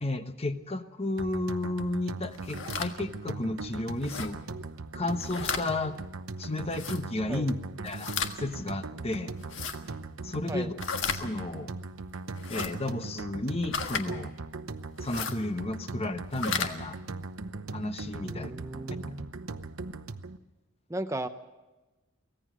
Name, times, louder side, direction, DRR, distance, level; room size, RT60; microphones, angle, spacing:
voice 1, 0.0-4.4 4.9-6.0 6.4-7.6 7.8-8.1 8.4-9.3 10.2-10.8 11.1-11.7 12.5-14.3 15.0-17.0 17.7-18.5, left 2 dB, 30° left, 9 dB, 1.0 m, -32 dB
sound 1, 1.2-20.4, right 3 dB, 85° right, 0.9 m, -40 dB
sound 2, 2.3-2.9 4.0-4.3 5.1-5.6 6.7-7.0 7.9-8.3 9.4-9.8 10.8-11.2 12.4-12.7 13.7-14.0 15.0-15.4 16.2-16.7, left 6 dB, 65° left, 1.6 m, -33 dB
voice 2, 18.2-19.3 20.9-21.3, right 1 dB, 15° right, 9 dB, 0.7 m, -35 dB
24.0 x 17.0 x 6.3 m, 1.1 s
head